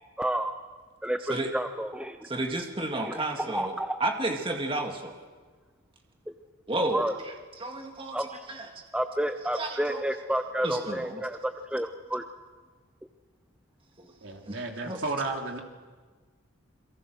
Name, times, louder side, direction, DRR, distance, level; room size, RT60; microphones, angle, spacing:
voice 1, 0.2-0.5 1.0-2.2 2.9-4.0 6.9-7.1 8.1-8.4 8.9-12.2, right 1 dB, 5° right, 7 dB, 0.7 m, -30 dB
voice 2, 1.2-1.5 2.2-5.2 6.7-8.8 9.5-10.0 10.6-11.2 14.0-14.1 14.4-15.0, right 2 dB, 25° right, 3 dB, 2.2 m, -32 dB
voice 3, 14.2-15.6, right 3 dB, 60° right, 2 dB, 3.3 m, -33 dB
28.5 x 23.0 x 6.4 m, 1.4 s
head